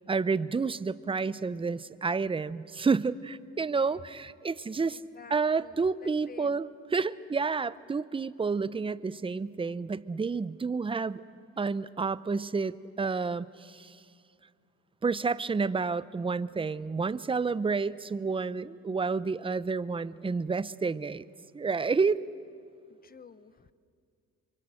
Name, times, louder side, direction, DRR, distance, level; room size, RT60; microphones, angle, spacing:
voice 1, 0.0-5.0 5.3-11.2 11.6-14.0 15.0-21.3 21.5-22.2, right 4 dB, 20° right, 17 dB, 0.6 m, -30 dB
voice 2, 4.9-6.6 22.9-23.7, left 6 dB, 30° left, 15 dB, 0.9 m, -51 dB
26.0 x 23.5 x 7.7 m, 2.2 s
cardioid pair, 90°, 30 cm